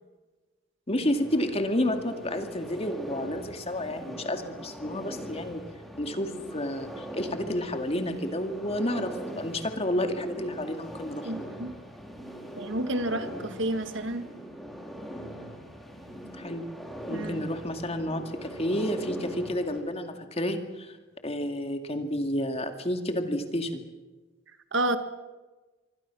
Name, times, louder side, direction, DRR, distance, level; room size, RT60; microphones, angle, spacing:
voice 1, 0.9-5.6 6.0-11.3 16.3-16.6 17.1-21.0 21.2-23.9, left 1 dB, 30° left, 6 dB, 2.3 m, -30 dB
sound 1, 0.9-19.8, equal, ahead, 3.7 m, -41 dB
voice 2, 11.2-11.7 12.6-14.3 17.1-17.4 24.7-25.0, right 1 dB, 65° right, 10 dB, 1.7 m, -30 dB
26.5 x 24.0 x 6.2 m, 1.2 s
head